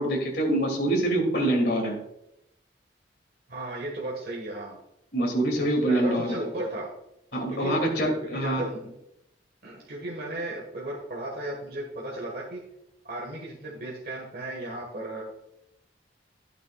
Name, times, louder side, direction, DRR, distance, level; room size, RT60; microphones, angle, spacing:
voice 1, 0.0-2.0 5.1-6.4 7.3-8.6, right 1 dB, 60° left, 0 dB, 2.5 m, -25 dB
voice 2, 3.5-4.8 5.5-6.9 7.5-7.8 8.3-8.9 9.6-12.6 13.0-15.2, right 1 dB, 55° right, -2 dB, 1.5 m, -35 dB
12.0 x 8.8 x 2.3 m, 0.82 s
head